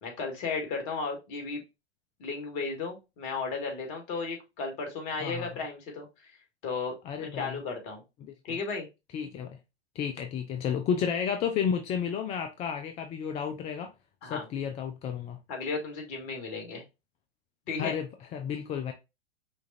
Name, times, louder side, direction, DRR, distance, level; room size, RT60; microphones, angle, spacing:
voice 1, 0.0-1.6 2.2-6.1 6.6-8.0 8.4-8.9 14.2-14.5 15.5-16.8 17.7-18.0, left 4 dB, 40° left, 1.9 m, -34 dB
voice 2, 7.0-7.6 8.2-8.6 9.1-9.6 9.9-13.9 14.2-15.4 17.8-18.9, left 7 dB, 20° left, 0.4 m, -32 dB
5.2 x 2.4 x 4.0 m
hypercardioid pair, 110°, 33 cm